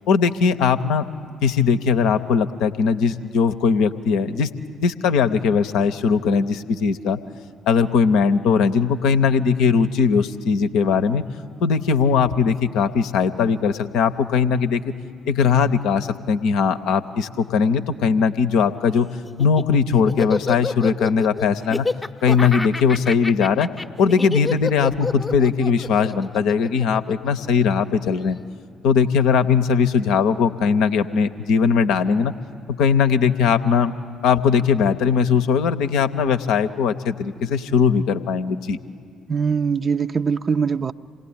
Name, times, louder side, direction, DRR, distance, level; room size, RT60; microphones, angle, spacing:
voice 1, 0.1-1.0 1.4-4.5 4.8-7.2 7.7-11.2 11.6-14.9 15.3-19.1 19.4-21.9 22.2-23.7 24.0-28.4 28.8-32.3 32.8-33.9 34.2-38.8, left 6 dB, 65° left, 9 dB, 0.7 m, -19 dB
Laughter, 19.2-27.7, left 3 dB, 20° left, 0.7 m, -28 dB
voice 2, 39.3-40.9, right 6 dB, 40° right, 11 dB, 0.5 m, -22 dB
27.0 x 18.0 x 8.7 m, 2.3 s
figure-of-eight pair, 45°, 0 cm